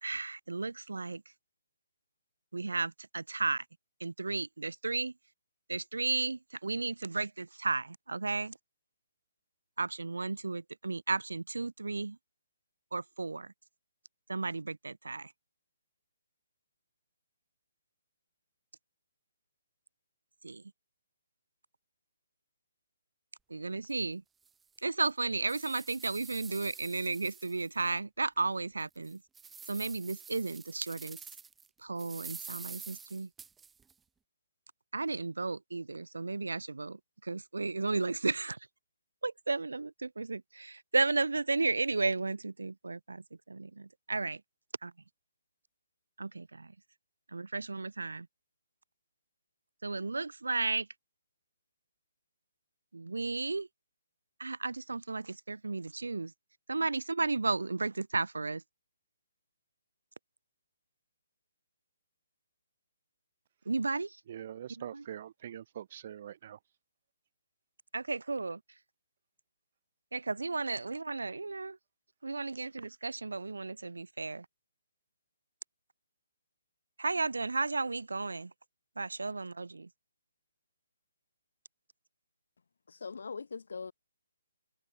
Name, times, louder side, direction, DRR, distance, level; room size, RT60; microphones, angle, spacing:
voice 1, 0.0-1.2 2.5-3.6 4.0-5.1 5.7-8.6 9.8-12.2 12.9-13.5 14.3-15.3 20.4-20.6 23.5-24.2 24.8-29.2 29.7-31.2 31.8-33.3 34.9-38.6 39.2-44.4 44.8-44.9 46.2-46.7 47.3-48.3 49.8-50.9 52.9-53.7 54.4-56.3 56.7-58.6 63.6-64.2 64.8-65.0 67.9-68.6 70.1-71.8 72.2-74.5 77.0-78.5 79.0-79.9, right 3 dB, 90° right, 2.9 m, -34 dB
sound 1, 23.8-23.9 24.5-24.6 25.1-27.9 28.4-28.5 29.0-31.7 32.0-33.9, right 6 dB, 10° right, 2.1 m, -48 dB
voice 2, 64.3-66.6, right 10 dB, 45° right, 0.9 m, -44 dB
voice 3, 82.9-83.9, left 5 dB, 70° left, 5.8 m, -41 dB
hypercardioid pair, 150°, 0 cm